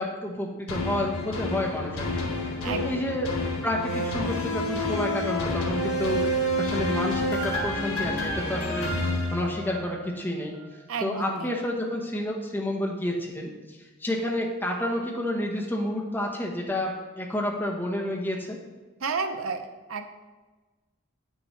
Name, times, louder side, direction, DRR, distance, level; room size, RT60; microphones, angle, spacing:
voice 1, 0.0-2.1 2.4-3.3 3.6-8.9 9.3-10.5 11.0-18.6, left 1 dB, 10° left, -1 dB, 0.9 m, -30 dB
sound 1, 0.7-10.1 10.5-10.6, left 1 dB, 85° left, 1.7 m, -29 dB
voice 2, 2.6-3.0 10.9-11.5 19.0-20.2, right 4 dB, 75° right, 8 dB, 0.7 m, -32 dB
8.7 x 6.4 x 3.2 m, 1.3 s
head